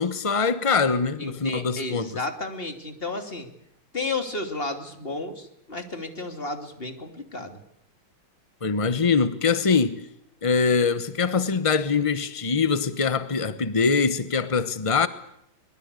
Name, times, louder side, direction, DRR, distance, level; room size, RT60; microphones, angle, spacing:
voice 1, 0.0-2.1 8.6-10.1 10.4-15.1, left 5 dB, 55° left, 0.3 m, -23 dB
voice 2, 1.2-3.5 3.9-7.6, left 3 dB, 25° left, 2.9 m, -32 dB
23.5 x 22.5 x 8.2 m
omnidirectional pair, 2.3 m